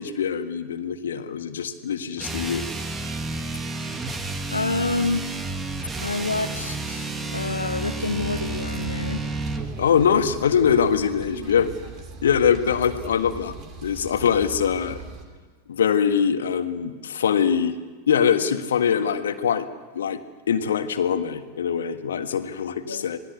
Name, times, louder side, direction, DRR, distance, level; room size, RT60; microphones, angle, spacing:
voice 1, 0.0-2.7 9.8-11.7 12.2-13.5 13.8-15.0 15.7-17.7 18.1-19.7 19.9-20.2 20.5-23.2, left 7 dB, 65° left, 9 dB, 1.6 m, -23 dB
sound 1, 2.2-9.7, right 3 dB, 15° right, 2.3 m, -31 dB
voice 2, 4.5-5.2 5.8-9.3 22.8-23.1, left 3 dB, 80° left, 4 dB, 1.2 m, -28 dB
sound 2, 8.1-15.2, right 4 dB, 35° right, 3.6 m, -39 dB
27.5 x 19.5 x 8.3 m, 1.4 s
figure-of-eight pair, 90°, 0 cm